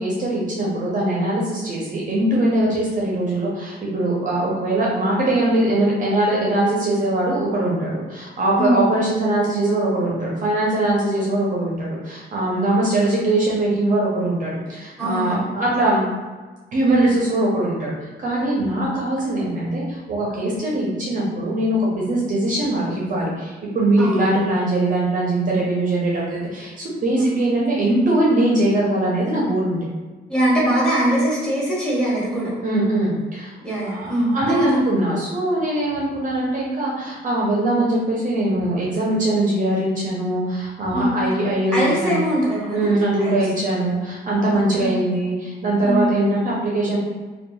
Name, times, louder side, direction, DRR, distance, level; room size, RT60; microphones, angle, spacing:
voice 1, 0.0-16.1 16.7-29.8 32.6-33.5 33.9-42.2 42.7-47.0, right 1 dB, 40° right, -4 dB, 0.6 m, -21 dB
voice 2, 15.0-15.4 24.0-24.2 27.2-27.4 30.3-32.5 33.6-34.7 40.9-41.2 41.7-42.9 43.2-43.3 44.5-44.9 45.8-46.0, right 1 dB, 5° left, -6 dB, 1.2 m, -22 dB
2.9 x 2.3 x 2.3 m, 1.3 s
cardioid pair, 90°, 20 cm